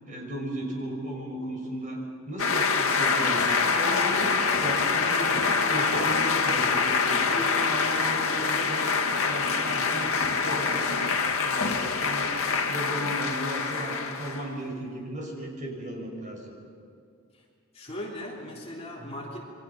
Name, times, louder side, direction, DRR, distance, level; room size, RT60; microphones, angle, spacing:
voice 1, 0.1-8.9 9.3-11.1 11.4-16.5, right 1 dB, 35° right, 0 dB, 6.1 m, -35 dB
sound 1, 2.4-14.5, left 5 dB, 70° left, 2.1 m, -25 dB
voice 2, 17.7-19.4, left 1 dB, 30° left, -3 dB, 3.5 m, -38 dB
28.5 x 23.5 x 5.9 m, 2.4 s
head